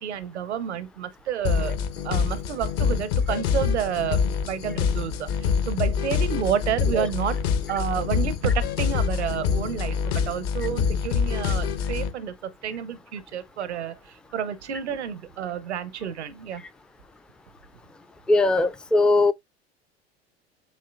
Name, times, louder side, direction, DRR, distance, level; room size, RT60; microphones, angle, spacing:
voice 1, 0.0-1.8 2.0-7.4 7.7-16.6, right 9 dB, 80° right, 0.7 m, -30 dB
sound 1, 1.4-12.1, left 6 dB, 55° left, 1.1 m, -25 dB
voice 2, 18.3-19.3, left 2 dB, 5° left, 0.3 m, -20 dB
7.7 x 2.8 x 2.3 m
figure-of-eight pair, 75°, 34 cm